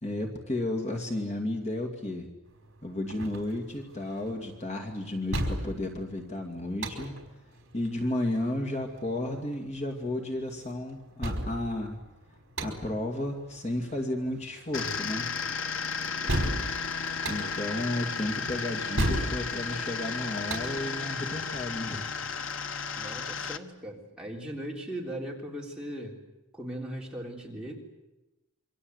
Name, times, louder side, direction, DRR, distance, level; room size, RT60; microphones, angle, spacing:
voice 1, 0.0-2.3 2.8-7.2 7.7-12.0 12.6-15.3 17.3-22.1, left 1 dB, 30° left, 3 dB, 2.5 m, -33 dB
sound 1, 2.5-21.7, right 1 dB, 65° right, 4.8 m, -36 dB
sound 2, 14.7-23.6, left 5 dB, 70° left, 1.3 m, -34 dB
voice 2, 16.2-16.7 22.9-26.2 26.5-27.7, right 1 dB, 5° right, -3 dB, 3.6 m, -39 dB
27.5 x 24.5 x 8.1 m, 1.0 s
head